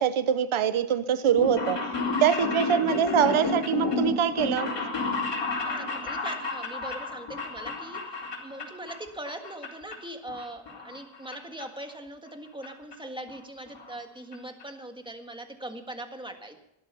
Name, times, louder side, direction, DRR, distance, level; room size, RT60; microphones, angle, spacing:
voice 1, 0.0-1.8 2.2-4.7, right 9 dB, 75° right, 12 dB, 1.0 m, -24 dB
sound 1, 1.2-9.0 9.2-9.9 10.3-11.3 11.6-11.7 12.6-12.7 12.9-13.0 13.3-13.4 13.7-13.9 14.3-14.4 14.6-14.7, left 3 dB, 55° left, 4.2 m, -31 dB
voice 2, 5.4-16.6, right 1 dB, 10° right, 5 dB, 1.6 m, -41 dB
17.0 x 12.5 x 5.6 m, 0.84 s
wide cardioid pair, 165°, 49 cm